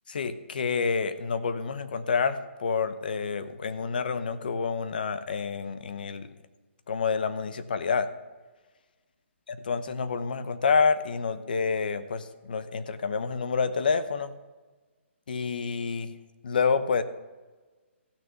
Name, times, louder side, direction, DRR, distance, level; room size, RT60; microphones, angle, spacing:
voice 1, 0.1-6.3 6.9-8.1 9.5-14.3 15.3-16.1 16.4-17.0, left 5 dB, 45° left, 12 dB, 0.8 m, -28 dB
15.0 x 6.5 x 6.8 m, 1.3 s
hypercardioid pair, 175°, 7 cm